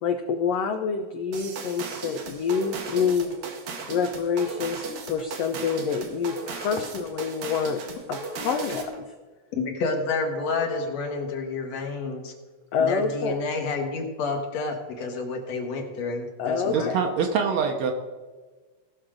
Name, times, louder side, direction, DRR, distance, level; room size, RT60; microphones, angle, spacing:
voice 1, 0.0-3.4 3.9-7.8 8.1-9.0 12.7-13.4 16.4-17.0, left 6 dB, 75° left, 5 dB, 1.5 m, -27 dB
sound 1, 1.3-9.0, right 4 dB, 85° right, 3.0 m, -36 dB
voice 2, 9.6-12.3 12.8-16.9, left 3 dB, 60° left, 3 dB, 2.3 m, -29 dB
voice 3, 16.7-17.9, right 6 dB, 70° right, 4 dB, 1.8 m, -24 dB
17.5 x 6.0 x 5.0 m, 1.3 s
omnidirectional pair, 3.7 m